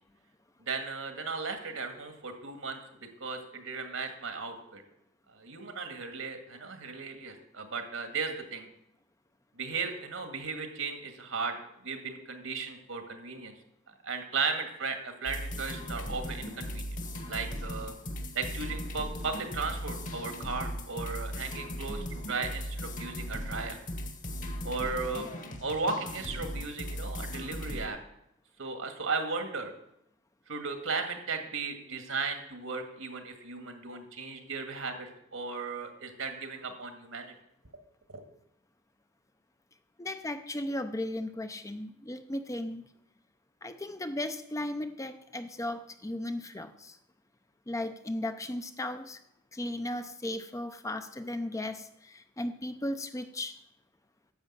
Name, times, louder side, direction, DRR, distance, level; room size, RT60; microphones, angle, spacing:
voice 1, 0.6-4.8 5.3-8.7 9.6-11.6 11.8-13.5 14.0-17.0 17.3-17.9 18.3-23.8 24.7-25.3 25.6-28.0 28.6-29.7 30.5-37.3 38.1-38.2, right 4 dB, 75° right, 6 dB, 1.8 m, -36 dB
sound 1, 15.3-27.9, equal, 40° left, 1.5 m, -38 dB
voice 2, 40.0-42.8 43.6-47.0 47.7-49.2 49.5-53.6, left 1 dB, 15° left, 9 dB, 0.6 m, -36 dB
10.5 x 7.4 x 7.3 m, 0.79 s
head